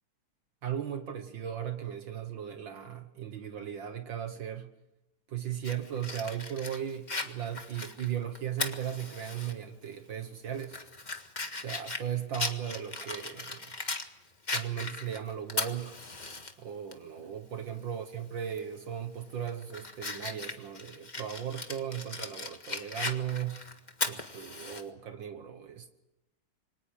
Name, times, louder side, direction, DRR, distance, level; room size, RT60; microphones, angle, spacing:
voice 1, 0.6-4.7 5.3-10.8 11.5-13.7 14.5-16.0 16.6-23.6 24.1-25.9, right 9 dB, 70° right, 2.0 m, -37 dB
Fire, 5.6-9.5 9.9-10.0 10.5-14.1 14.5-16.5 16.9-17.0 18.5-18.7 19.2-24.8, left 3 dB, 25° left, 1.6 m, -38 dB
27.5 x 24.5 x 5.0 m
omnidirectional pair, 2.2 m